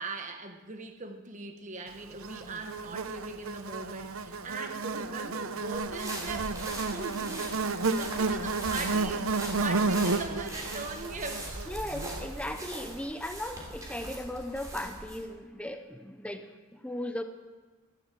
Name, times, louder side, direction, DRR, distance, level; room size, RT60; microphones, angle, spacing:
voice 1, 0.0-11.6, right 3 dB, 35° right, 6 dB, 1.2 m, -40 dB
Buzz, 2.2-12.6, right 3 dB, 70° right, 0.8 m, -32 dB
sound 1, 5.7-15.2, right 1 dB, 15° right, 3.3 m, -41 dB
voice 2, 11.7-17.2, left 1 dB, 5° left, 7 dB, 0.7 m, -37 dB
14.5 x 11.0 x 7.6 m, 1.3 s
head